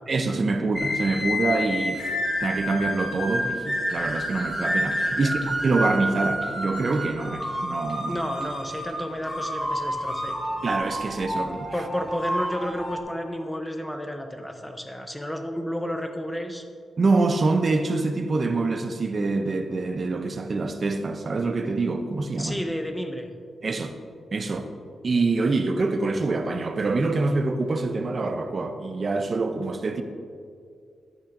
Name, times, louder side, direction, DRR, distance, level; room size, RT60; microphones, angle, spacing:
voice 1, 0.1-8.2 10.6-11.7 17.0-22.6 23.6-24.0 24.3-24.7 25.0-30.0, right 3 dB, 35° right, 0.6 m, -25 dB
sound 1, 0.7-13.0, equal, 20° left, 1.2 m, -29 dB
voice 2, 8.1-10.4 11.7-16.6 22.4-23.3, equal, 5° left, 0.7 m, -31 dB
13.5 x 8.5 x 2.6 m
wide cardioid pair, 160°, 0 cm